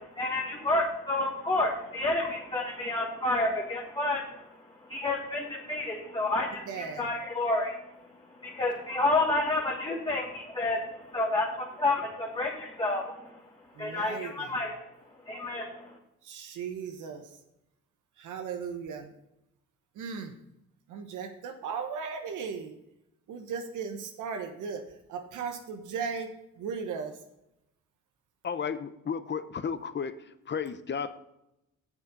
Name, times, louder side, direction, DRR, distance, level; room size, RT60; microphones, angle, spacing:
voice 1, 0.0-4.5 4.9-7.7 8.4-13.4 13.8-14.7 15.3-16.0, left 2 dB, 15° left, -2 dB, 1.6 m, -30 dB
voice 2, 6.7-7.0 13.8-14.5 16.2-17.2 18.2-19.1 20.0-20.3 20.9-22.7 23.3-24.8 25.1-26.3 26.6-27.1, right 6 dB, 80° right, 5 dB, 1.2 m, -36 dB
voice 3, 28.4-30.2 30.5-31.2, left 6 dB, 35° left, 12 dB, 0.8 m, -33 dB
8.6 x 7.2 x 5.3 m, 0.86 s
cardioid pair, 90°, 30 cm